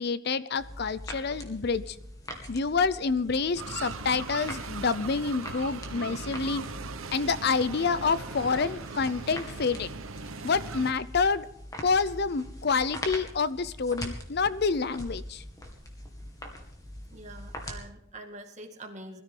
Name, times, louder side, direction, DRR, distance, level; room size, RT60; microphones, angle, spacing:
voice 1, 0.0-2.0 2.5-6.6 7.1-9.9 10.4-11.5 11.8-15.4, left 4 dB, 50° left, 16 dB, 0.5 m, -28 dB
sound 1, 0.6-17.8, left 1 dB, 15° left, 2.2 m, -43 dB
sound 2, 3.6-10.9, right 4 dB, 85° right, 1.1 m, -39 dB
voice 2, 17.1-19.2, right 1 dB, 35° right, 3 dB, 2.1 m, -44 dB
21.0 x 13.5 x 3.8 m, 0.77 s
head